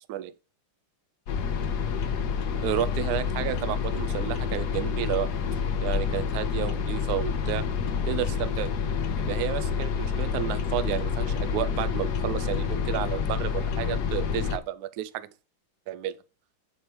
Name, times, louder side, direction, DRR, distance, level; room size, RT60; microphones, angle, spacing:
sound 1, 1.3-14.6, left 6 dB, 60° left, 1.2 m, -28 dB
voice 1, 2.6-5.3 5.8-7.7 8.1-8.7 9.2-15.3 15.9-16.1, right 12 dB, 85° right, 0.8 m, -31 dB
7.9 x 4.7 x 3.1 m
omnidirectional pair, 2.3 m